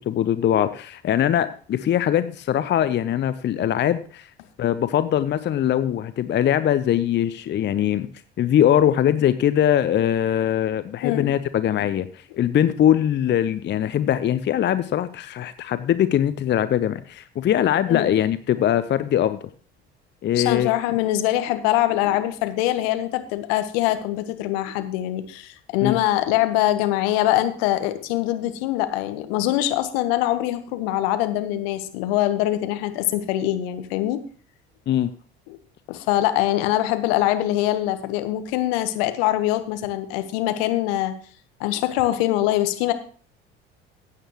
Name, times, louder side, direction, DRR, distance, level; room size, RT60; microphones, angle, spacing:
voice 1, 0.1-4.3 4.6-8.1 8.4-19.4 20.2-20.7 25.8-26.0 34.9-35.1, left 10 dB, 35° left, 14 dB, 0.6 m, -21 dB
voice 2, 11.0-11.3 17.9-18.1 20.3-34.2 35.5-35.6 35.9-41.1 41.6-42.9, left 14 dB, 65° left, 10 dB, 1.2 m, -23 dB
15.0 x 8.9 x 3.0 m, 0.42 s
figure-of-eight pair, 60°, 33 cm